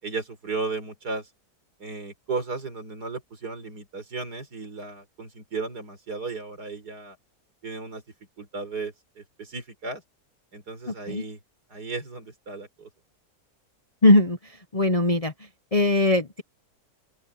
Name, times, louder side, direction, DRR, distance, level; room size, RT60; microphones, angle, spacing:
voice 1, 0.0-1.3 1.8-7.2 7.6-8.0 8.4-10.0 10.5-11.4 11.7-12.9, right 3 dB, 90° right, 4.8 m, -35 dB
voice 2, 10.9-11.2 14.0-15.3 15.7-16.4, left 1 dB, 30° left, 0.8 m, -21 dB
open air
omnidirectional pair, 1.7 m